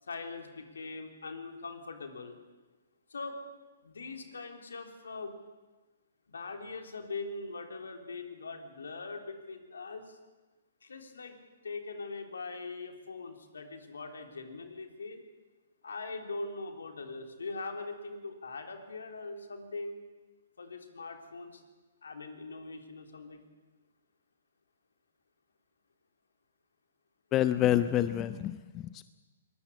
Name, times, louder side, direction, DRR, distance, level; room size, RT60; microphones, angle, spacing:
voice 1, 0.0-2.4 3.1-3.4 3.8-5.4 6.3-10.2 10.8-11.4 11.6-15.3 15.8-20.0 20.6-21.6 22.0-23.4, left 3 dB, 75° left, 5 dB, 3.6 m, -41 dB
voice 2, 27.3-29.0, left 12 dB, 25° left, 12 dB, 0.8 m, -28 dB
22.5 x 20.5 x 8.3 m, 1.2 s
figure-of-eight pair, 125°, 0 cm